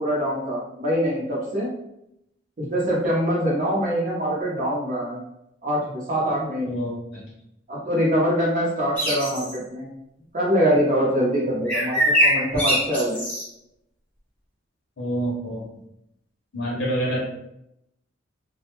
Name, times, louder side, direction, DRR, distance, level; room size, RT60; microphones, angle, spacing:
voice 1, 0.0-1.7 2.6-5.2 5.6-6.8 7.7-9.9 10.3-13.2, equal, 40° right, -6 dB, 0.7 m, -24 dB
voice 2, 6.7-7.2 15.0-15.6 16.5-17.2, right 1 dB, 70° left, -4 dB, 0.7 m, -27 dB
sound 1, 9.0-9.6 11.7-13.4, equal, 10° left, 0.7 m, -22 dB
2.2 x 2.1 x 2.9 m, 0.81 s
head